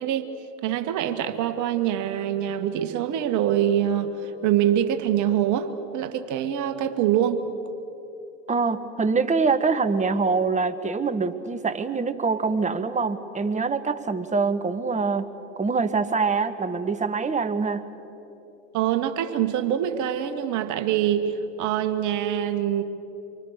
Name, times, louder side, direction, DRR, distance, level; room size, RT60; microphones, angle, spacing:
voice 1, 0.0-0.3 0.6-4.1 4.4-7.4 18.7-22.8, right 10 dB, 50° right, 9 dB, 1.8 m, -24 dB
voice 2, 8.5-15.3 15.6-17.9, right 4 dB, 20° right, 10 dB, 1.4 m, -24 dB
27.0 x 24.0 x 6.7 m, 2.9 s
hypercardioid pair, 80°, 37 cm